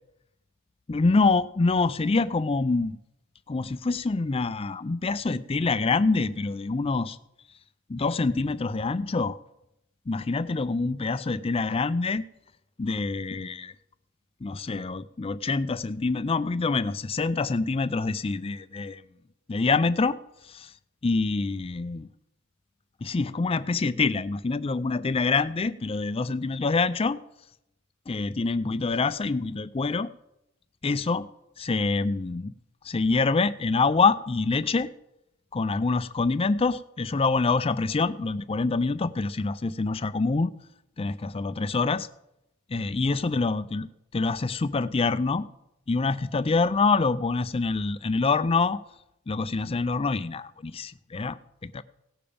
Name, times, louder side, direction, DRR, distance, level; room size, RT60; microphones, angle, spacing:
voice 1, 0.9-3.0 3.5-7.2 7.9-9.4 10.1-12.2 12.8-13.7 14.4-19.0 19.5-20.2 20.5-20.7 21.0-22.1 23.0-27.2 28.1-30.1 30.8-31.3 31.6-32.5 32.8-34.9 35.5-40.5 41.0-42.1 42.7-45.5 45.9-48.8 49.3-51.4 51.6-51.8, left 3 dB, 25° left, 15 dB, 0.4 m, -26 dB
17.5 x 6.9 x 5.1 m, 0.84 s
head